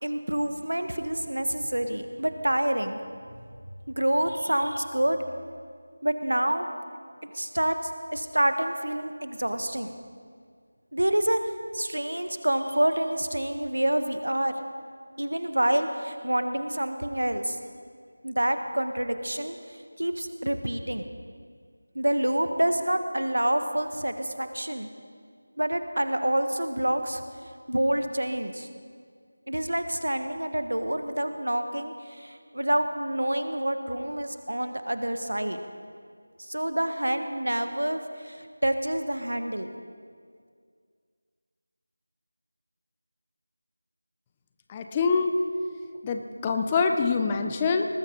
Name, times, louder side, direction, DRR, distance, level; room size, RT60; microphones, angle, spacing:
voice 1, 0.0-3.0 3.9-5.2 6.0-6.7 7.2-7.8 8.1-10.0 10.9-11.4 11.7-14.5 15.2-17.6 18.2-19.5 20.0-21.1 21.9-24.9 25.6-27.2 27.7-28.7 29.5-35.6 36.4-39.7, right 1 dB, 85° right, 8 dB, 1.2 m, -27 dB
voice 2, 44.7-45.3 46.0-47.9, left 5 dB, 15° left, 6 dB, 0.5 m, -25 dB
19.5 x 13.5 x 3.8 m, 2.1 s
figure-of-eight pair, 170°, 0 cm